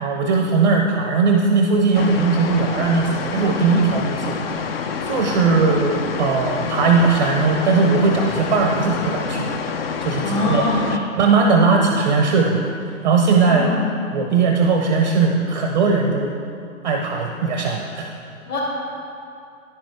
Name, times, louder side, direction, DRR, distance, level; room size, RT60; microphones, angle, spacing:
voice 1, 0.0-4.7 5.0-9.5 10.0-10.6 10.9-12.6 13.0-13.7 14.1-16.3 16.8-18.1, right 4 dB, 35° right, 2 dB, 0.5 m, -19 dB
sound 1, 1.9-11.0, left 5 dB, 45° left, 0.5 m, -27 dB
voice 2, 10.2-11.0 13.4-14.0 18.5-18.6, left 2 dB, 25° left, -5 dB, 1.8 m, -23 dB
9.9 x 6.1 x 3.3 m, 2.6 s
hypercardioid pair, 135°, 42 cm